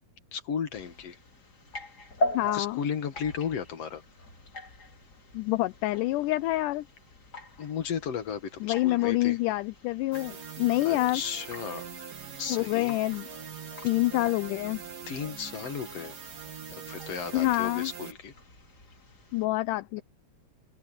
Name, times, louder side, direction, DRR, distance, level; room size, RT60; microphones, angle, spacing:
voice 1, 0.3-1.2 2.5-4.0 7.6-9.4 10.8-11.9 12.4-13.0 15.1-16.2 16.7-18.3, left 7 dB, 55° left, 2.5 m, -34 dB
sound 1, 0.7-19.5, left 1 dB, 30° left, 3.1 m, -42 dB
voice 2, 2.3-2.8 5.3-6.9 8.6-11.2 12.5-13.3 13.8-14.8 17.3-17.9 19.3-20.0, left 18 dB, 80° left, 2.0 m, -27 dB
sound 2, 10.1-18.1, right 7 dB, 80° right, 4.9 m, -43 dB
omnidirectional pair, 3.8 m